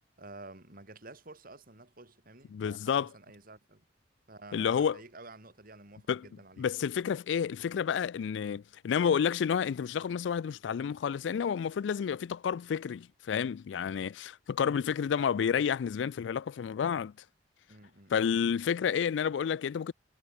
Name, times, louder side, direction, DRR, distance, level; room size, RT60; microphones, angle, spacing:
voice 1, 0.2-3.8 4.3-6.8 17.7-18.1, right 2 dB, 50° right, 5.4 m, -51 dB
voice 2, 2.5-3.1 4.5-5.0 6.1-6.3 6.6-17.1 18.1-19.9, left 7 dB, 85° left, 0.3 m, -30 dB
head